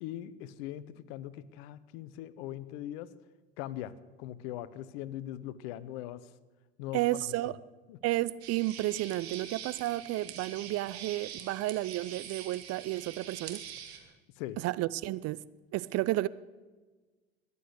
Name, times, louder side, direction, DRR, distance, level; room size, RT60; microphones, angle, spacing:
voice 1, 0.0-3.1 3.6-6.3 6.8-7.5 7.9-8.0 14.4-14.6, left 13 dB, 70° left, 0.9 m, -41 dB
voice 2, 6.9-7.5 8.0-13.6 14.6-15.4 15.7-16.3, right 17 dB, 50° right, 0.6 m, -32 dB
sound 1, 8.4-14.0, right 9 dB, 80° right, 1.9 m, -45 dB
20.5 x 8.4 x 8.1 m
hypercardioid pair, 65°, 32 cm